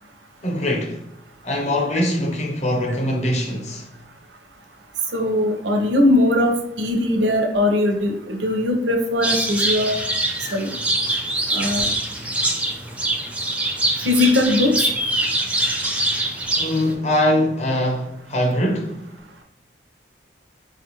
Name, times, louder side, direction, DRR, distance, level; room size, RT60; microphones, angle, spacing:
voice 1, 0.4-1.0 1.4-3.9 11.1-11.2 16.6-19.0, left 1 dB, 40° left, 0.7 m, -22 dB
voice 2, 5.1-9.9 10.5-10.7 11.5-11.9 14.0-14.7, left 1 dB, 85° right, 0.7 m, -20 dB
sound 1, 9.2-16.9, right 1 dB, 10° right, 0.4 m, -24 dB
4.6 x 2.5 x 2.9 m
head